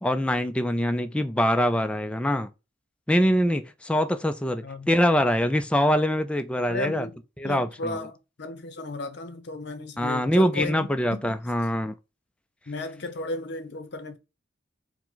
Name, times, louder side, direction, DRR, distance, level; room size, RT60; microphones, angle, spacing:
voice 1, 0.0-2.5 3.1-7.1 7.4-8.0 10.0-11.9, equal, 5° left, 0.3 m, -24 dB
voice 2, 6.7-7.2 7.4-11.4 12.7-14.2, left 2 dB, 60° left, 0.7 m, -34 dB
4.7 x 2.1 x 3.8 m
head